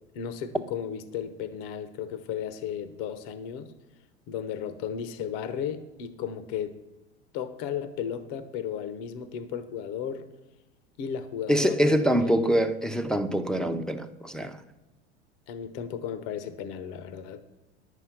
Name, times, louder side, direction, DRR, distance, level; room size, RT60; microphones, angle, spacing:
voice 1, 0.1-3.7 4.3-6.7 7.3-10.3 11.0-12.6 15.5-17.4, left 8 dB, 60° left, 1.0 m, -35 dB
voice 2, 11.5-14.6, equal, ahead, 0.7 m, -25 dB
11.0 x 8.2 x 5.9 m
hypercardioid pair, 85°, 32 cm